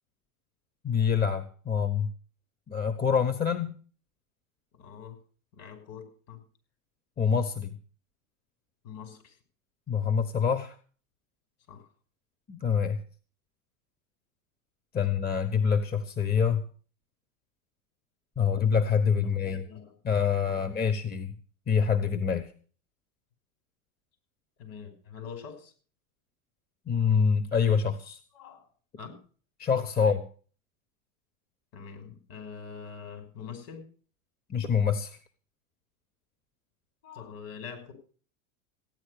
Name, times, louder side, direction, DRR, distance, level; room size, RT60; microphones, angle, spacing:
voice 1, 0.8-2.1 2.7-3.8 7.2-7.8 9.9-10.8 12.5-13.0 14.9-16.6 18.4-19.6 20.0-21.3 21.7-22.5 26.9-28.2 29.6-30.2 34.5-35.2, left 6 dB, 20° left, 11 dB, 1.1 m, -26 dB
voice 2, 4.7-5.2 5.5-6.4 8.8-9.4 11.7-11.9 19.4-19.9 20.5-20.8 24.6-25.7 28.3-28.7 29.0-29.2 30.0-30.2 31.7-33.9 37.0-37.9, left 6 dB, 55° left, 7 dB, 5.8 m, -44 dB
15.5 x 10.0 x 6.6 m, 0.42 s
hypercardioid pair, 115°, 42 cm